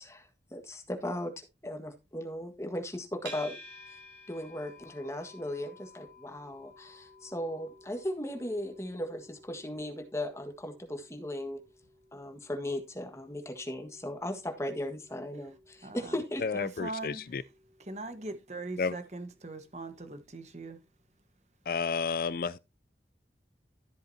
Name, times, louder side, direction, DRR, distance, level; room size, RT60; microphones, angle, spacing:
voice 1, 0.0-3.6 3.9-4.0 4.3-11.6 12.1-16.6, left 1 dB, 15° left, 1.6 m, -37 dB
sound 1, 3.3-20.5, equal, 90° right, 6.3 m, -55 dB
voice 2, 15.8-16.2 16.5-17.2 17.8-20.8, right 2 dB, 40° right, 1.3 m, -40 dB
voice 3, 16.4-17.4 18.8-18.9 21.7-22.6, left 5 dB, 50° left, 0.4 m, -31 dB
13.0 x 7.8 x 2.8 m
head